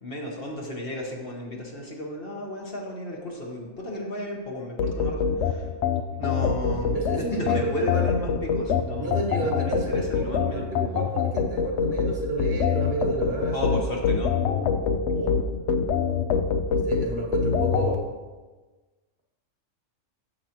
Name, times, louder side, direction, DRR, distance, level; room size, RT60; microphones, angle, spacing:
voice 1, 0.0-5.7 6.2-10.7 13.5-14.3, left 1 dB, 45° left, -1 dB, 1.4 m, -33 dB
sound 1, 4.8-17.9, left 6 dB, 65° left, 0.8 m, -25 dB
voice 2, 6.9-8.1 9.0-13.8 15.1-15.4 16.7-18.1, right 3 dB, 50° right, 0 dB, 1.4 m, -31 dB
9.5 x 7.6 x 3.0 m, 1.3 s
omnidirectional pair, 1.4 m